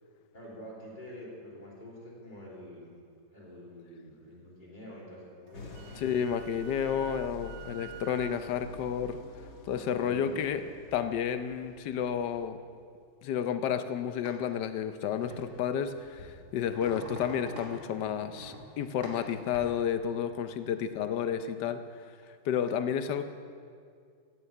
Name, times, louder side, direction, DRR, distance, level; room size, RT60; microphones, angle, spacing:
voice 1, 0.3-6.0 9.7-10.6 20.6-20.8 21.2-21.5, equal, 25° left, -5 dB, 3.3 m, -47 dB
sound 1, 5.5-12.5, left 2 dB, 55° left, 1.8 m, -50 dB
Wind instrument woodwind instrument, 5.5-8.4, right 12 dB, 85° right, 1.2 m, -49 dB
voice 2, 6.0-9.2 9.7-10.6 10.9-12.6 13.2-21.8 22.4-23.2, left 8 dB, 75° left, 10 dB, 1.4 m, -31 dB
sound 2, 14.3-14.4 15.2-15.5 16.0-17.8 18.2-18.6 19.0-19.7, right 1 dB, 45° right, 2.9 m, -44 dB
16.0 x 6.8 x 8.5 m, 2.2 s
omnidirectional pair, 1.9 m